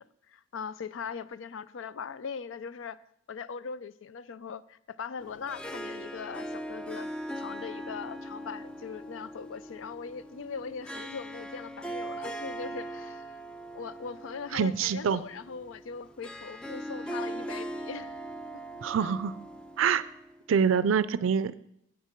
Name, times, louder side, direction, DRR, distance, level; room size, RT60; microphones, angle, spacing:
voice 1, 0.0-3.0 3.3-13.3 13.7-18.2 19.0-19.1, left 5 dB, 80° left, 0.4 m, -40 dB
Harp, 5.2-20.5, right 1 dB, 5° left, 0.4 m, -40 dB
voice 2, 14.5-15.2 18.8-19.4 19.8-20.0 20.5-21.6, right 7 dB, 90° right, 0.4 m, -25 dB
9.3 x 8.7 x 4.5 m
head